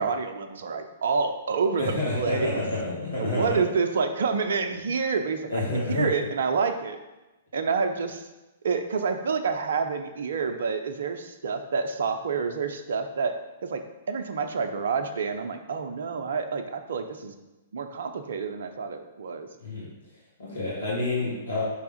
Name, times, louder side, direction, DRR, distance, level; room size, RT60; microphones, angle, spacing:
voice 1, 0.0-2.6 3.2-7.0 7.5-8.3 8.6-13.3 13.6-13.8 14.1-17.3 17.7-19.5, right 5 dB, 65° right, 7 dB, 0.6 m, -28 dB
voice 2, 1.8-3.6 5.5-6.1 19.6-19.9 20.4-21.6, left 2 dB, 75° left, -6 dB, 1.7 m, -28 dB
5.4 x 3.5 x 5.0 m, 1.0 s
figure-of-eight pair, 115°, 0 cm